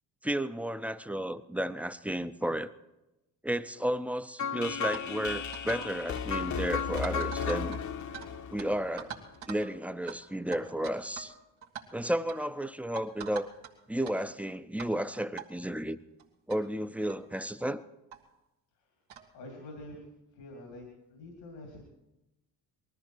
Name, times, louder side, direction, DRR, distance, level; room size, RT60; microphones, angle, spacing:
voice 1, 0.2-2.7 3.4-7.8 8.5-9.1 9.5-11.3 11.9-13.5 13.9-16.0 16.5-17.8, right 1 dB, 5° right, 12 dB, 0.6 m, -33 dB
sound 1, 4.4-9.4, left 6 dB, 40° left, 0.9 m, -34 dB
sound 2, 4.9-5.1 5.5-5.9 6.2-6.4 7.0-8.3 8.6-8.7 9.0-9.7 10.1-10.2 10.5-11.3 11.6-11.8 12.3-12.5 13.0-13.7 14.0-14.2 14.8-15.0 15.4-15.5 16.2-16.3 16.5-16.6 17.1-17.2 18.1-18.2 19.1-19.3, right 8 dB, 80° right, 1.9 m, -43 dB
voice 2, 19.3-20.1 20.3-21.9, left 1 dB, 90° left, 1 dB, 2.8 m, -46 dB
20.0 x 13.5 x 4.6 m, 0.97 s
hypercardioid pair, 60°, 45 cm